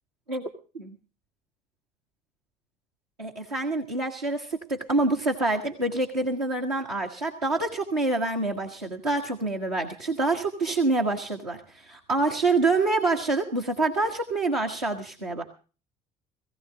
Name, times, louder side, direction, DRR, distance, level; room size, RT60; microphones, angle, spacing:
voice 1, 3.2-15.4, right 2 dB, 85° right, -1 dB, 1.5 m, -26 dB
19.0 x 16.0 x 3.8 m, 0.36 s
figure-of-eight pair, 60°, 20 cm